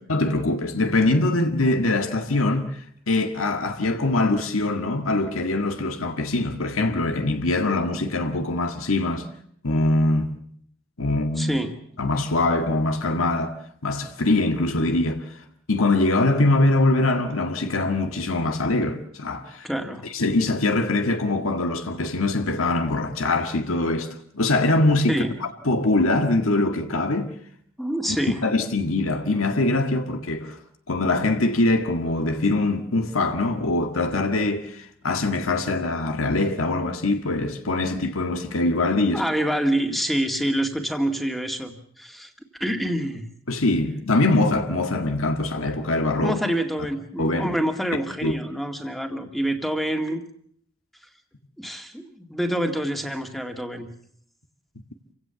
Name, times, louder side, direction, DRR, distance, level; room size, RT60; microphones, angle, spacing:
voice 1, 0.1-2.8 3.1-9.3 9.6-10.3 11.0-11.6 12.0-13.6 13.8-15.3 15.7-19.7 20.1-25.2 25.7-27.3 28.1-28.2 28.4-30.6 30.9-39.2 43.5-46.4 47.2-47.5 48.2-48.4, left 2 dB, 90° left, 1.8 m, -23 dB
voice 2, 11.4-11.8 19.6-20.1 25.1-25.3 27.8-28.5 39.1-42.3 42.6-43.3 46.2-50.2 51.6-53.9, right 1 dB, ahead, 2.1 m, -26 dB
28.0 x 17.0 x 7.0 m
head